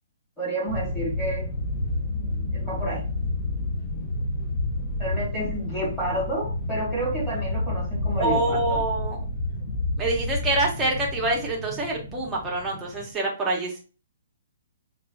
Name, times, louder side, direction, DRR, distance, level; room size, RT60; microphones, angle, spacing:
voice 1, 0.4-1.5 2.5-3.0 5.0-8.8, right 1 dB, 10° left, 1.4 m, -30 dB
sound 1, 0.7-13.1, left 2 dB, 30° left, 0.5 m, -30 dB
voice 2, 8.2-9.2 10.0-13.8, right 2 dB, 10° right, 0.7 m, -26 dB
5.4 x 2.3 x 2.2 m
hypercardioid pair, 175°, 0 cm